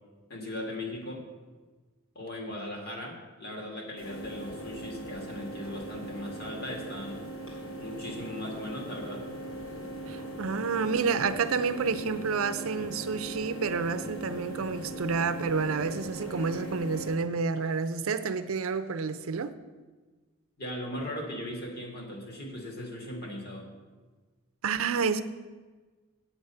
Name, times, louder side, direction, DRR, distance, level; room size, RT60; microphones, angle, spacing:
voice 1, 0.3-1.2 2.1-7.2 7.8-9.2 11.0-11.1 20.6-23.7, left 1 dB, 45° left, 0 dB, 2.1 m, -38 dB
sound 1, 4.0-17.1, right 1 dB, 75° left, 3.0 m, -40 dB
voice 2, 10.1-19.5 24.6-25.2, right 5 dB, 75° right, 11 dB, 0.5 m, -29 dB
8.8 x 8.1 x 5.5 m, 1.3 s
head